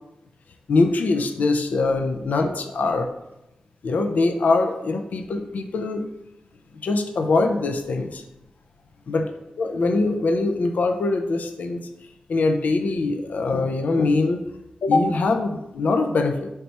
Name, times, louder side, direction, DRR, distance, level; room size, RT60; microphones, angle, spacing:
voice 1, 0.7-3.1 3.8-6.0 6.8-8.2 9.1-9.3 9.6-11.9 12.3-14.4 14.8-16.5, left 3 dB, 75° left, 6 dB, 0.4 m, -22 dB
3.3 x 2.8 x 4.2 m, 0.89 s
cardioid pair, 60°, 3 cm